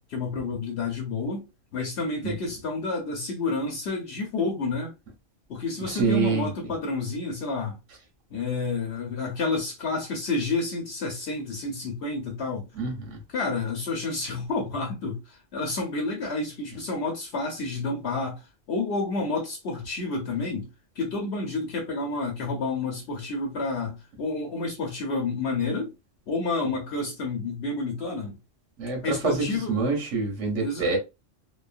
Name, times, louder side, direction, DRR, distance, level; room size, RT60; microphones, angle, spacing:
voice 1, 0.1-1.4 1.7-4.9 5.5-7.8 8.3-12.7 13.3-18.4 18.7-20.7 21.0-25.9 26.3-28.4 29.0-29.8 30.6-31.0, left 3 dB, 65° left, 0.9 m, -30 dB
voice 2, 5.9-6.7 12.8-13.2 28.8-31.0, right 4 dB, 75° right, 1.2 m, -26 dB
3.0 x 2.0 x 2.4 m
omnidirectional pair, 1.3 m